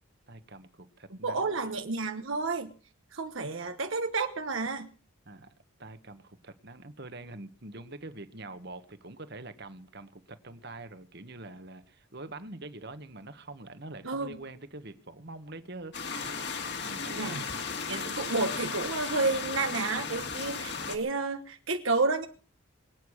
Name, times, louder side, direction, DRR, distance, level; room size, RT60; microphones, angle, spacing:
voice 1, 0.3-1.7 5.2-5.5 5.8-16.5 16.8-17.6, right 2 dB, 50° right, 11 dB, 1.4 m, -45 dB
voice 2, 1.1-2.7 3.1-4.9 14.0-14.4 17.1-17.4 17.9-22.3, right 3 dB, 65° right, 6 dB, 1.1 m, -31 dB
sound 1, 15.9-21.0, left 5 dB, 50° left, 2.8 m, -35 dB
23.5 x 9.3 x 6.4 m, 0.40 s
head